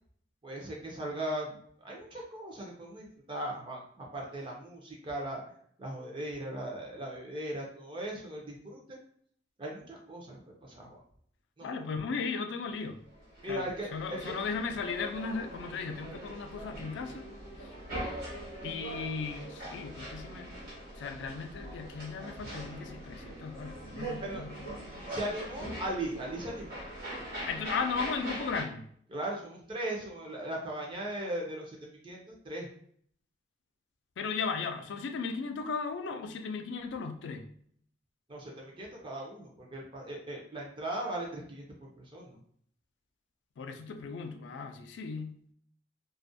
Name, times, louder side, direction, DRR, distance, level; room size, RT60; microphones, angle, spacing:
voice 1, 0.4-5.4 5.8-9.0 9.6-11.0 11.6-11.9 13.4-14.3 22.4-22.5 24.2-24.4 25.1-26.8 29.1-32.7 38.3-42.4, right 1 dB, 25° right, -2 dB, 0.5 m, -38 dB
voice 2, 11.6-13.0 13.4-13.6 13.9-17.2 17.6-17.7 18.6-20.5 21.0-24.5 27.5-28.8 34.2-37.5 43.6-45.3, left 5 dB, 75° left, 6 dB, 0.3 m, -36 dB
sound 1, 13.0-28.6, right 1 dB, 50° right, 1.2 m, -42 dB
2.4 x 2.1 x 2.6 m, 0.62 s
head